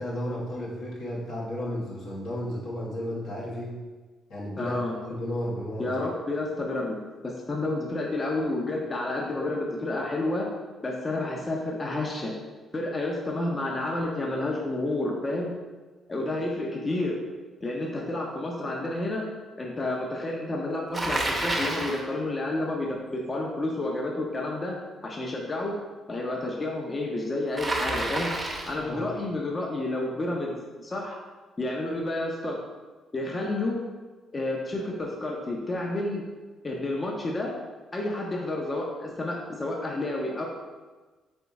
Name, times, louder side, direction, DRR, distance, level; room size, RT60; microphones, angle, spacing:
voice 1, 0.0-3.7 4.3-4.8 5.1-5.9 28.9-29.0, left 1 dB, 80° left, -6 dB, 1.4 m, -33 dB
voice 2, 4.6-5.0 5.8-7.0 7.2-10.5 10.8-12.3 12.7-15.5 16.1-17.2 17.6-19.3 19.6-24.8 25.0-25.8 26.1-28.3 28.7-31.2 31.6-32.6 33.1-33.8 34.3-36.2 36.6-37.5 37.9-40.5, left 2 dB, 30° left, -1 dB, 0.6 m, -30 dB
Bicycle, 20.9-22.0 27.6-28.8, right 1 dB, 15° right, 0.8 m, -29 dB
3.7 x 3.5 x 4.0 m, 1.3 s
cardioid pair, 90°, 0 cm